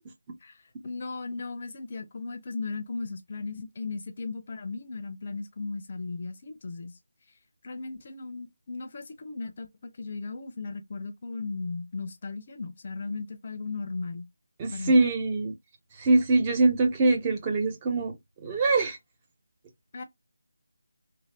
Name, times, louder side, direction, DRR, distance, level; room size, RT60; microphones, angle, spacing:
voice 1, 0.4-6.9 7.6-14.3 14.7-14.9 19.9-20.0, left 3 dB, 35° left, 0.5 m, -36 dB
voice 2, 14.6-15.5 16.0-18.2 18.4-19.0, right 3 dB, 20° right, 0.5 m, -23 dB
3.2 x 2.1 x 2.8 m
figure-of-eight pair, 170°, 0 cm